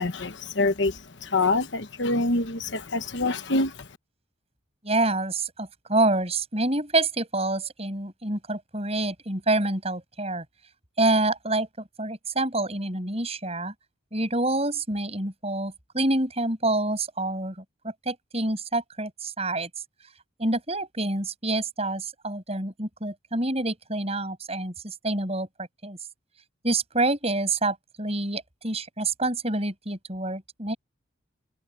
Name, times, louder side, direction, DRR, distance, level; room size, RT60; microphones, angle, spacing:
voice 1, 0.0-3.9, left 2 dB, 60° left, 1.1 m, -26 dB
voice 2, 4.8-10.4 11.0-11.7 12.0-13.7 14.1-19.7 20.4-26.0 26.6-30.8, right 2 dB, 30° right, 7.5 m, -27 dB
head